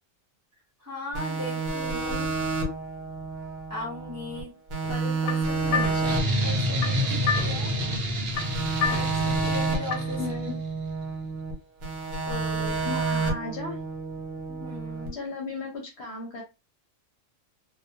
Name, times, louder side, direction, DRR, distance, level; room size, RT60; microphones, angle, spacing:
voice 1, 0.8-2.3 3.7-4.5 4.9-7.7 8.8-10.2 12.2-12.8 14.5-15.2, left 1 dB, 15° right, -4 dB, 0.8 m, -38 dB
sound 1, 1.1-4.4 4.7-8.0 8.3-11.5 11.8-15.1, right 3 dB, 80° right, 1.2 m, -30 dB
sound 2, 4.8-10.3, left 6 dB, 90° left, 1.0 m, -33 dB
voice 2, 5.6-6.1 7.1-7.2 8.0-8.1 9.1-9.2 10.2-10.5 12.8-13.8 15.1-16.4, left 3 dB, 60° left, 0 dB, 0.8 m, -36 dB
sound 3, 6.0-10.5, equal, 55° right, 0.8 m, -28 dB
2.3 x 2.2 x 2.6 m, 0.27 s
omnidirectional pair, 1.4 m